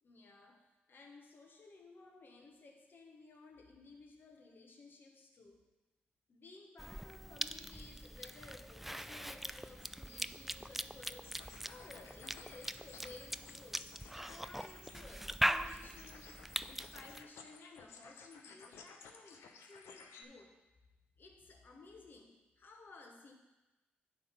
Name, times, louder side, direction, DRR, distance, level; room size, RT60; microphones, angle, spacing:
voice 1, 0.0-5.7 6.3-13.9 14.3-20.6 21.2-23.3, left 3 dB, 55° left, 2 dB, 1.3 m, -57 dB
Cough / Chewing mastication, 6.8-17.2, right 1 dB, 5° right, 0.3 m, -41 dB
sound 1, 11.1-20.2, left 5 dB, 85° left, 0.7 m, -56 dB
9.3 x 3.5 x 6.8 m, 1.1 s
supercardioid pair, 55°, 4 cm